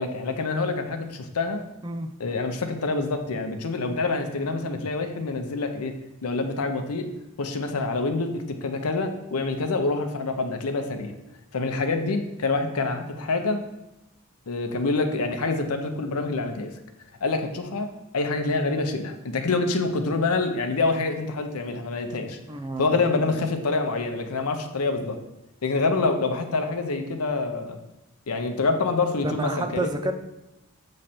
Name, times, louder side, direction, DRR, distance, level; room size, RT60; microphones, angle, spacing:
voice 1, 0.0-1.6 2.2-5.9 6.2-7.1 7.4-11.1 11.5-13.6 14.5-16.7 17.2-17.9 18.1-22.4 22.8-25.2 25.6-27.8 28.3-29.9, left 3 dB, 85° left, 6 dB, 0.7 m, -26 dB
voice 2, 22.5-23.0 29.2-30.1, right 2 dB, 20° right, 7 dB, 0.3 m, -29 dB
7.5 x 3.2 x 4.2 m, 0.95 s
head